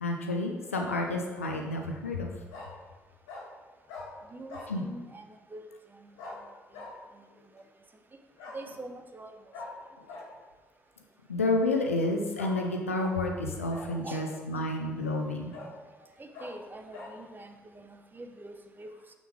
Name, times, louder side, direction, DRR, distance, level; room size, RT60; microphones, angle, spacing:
voice 1, 0.0-2.3 4.7-4.8 10.0-10.1 11.3-15.5, left 2 dB, 85° left, 2 dB, 0.5 m, -30 dB
Bark, 2.5-2.7 3.3-3.4 3.9-4.1 4.5-4.7 6.2-6.4 6.7-6.9 8.4-8.6 9.5-9.7 10.1-10.2 12.4-12.6 13.0-13.1 13.7-14.3 14.9-15.0 15.5-15.7 16.3-16.5 16.9-17.1, left 3 dB, 70° left, 1.6 m, -43 dB
voice 2, 4.3-6.4 7.1-7.2 7.5-7.6 8.5-9.3 14.0-14.3 14.5-14.6 16.2-18.9, right 2 dB, 25° right, 5 dB, 0.9 m, -45 dB
6.1 x 5.3 x 4.8 m, 1.3 s
figure-of-eight pair, 45°, 7 cm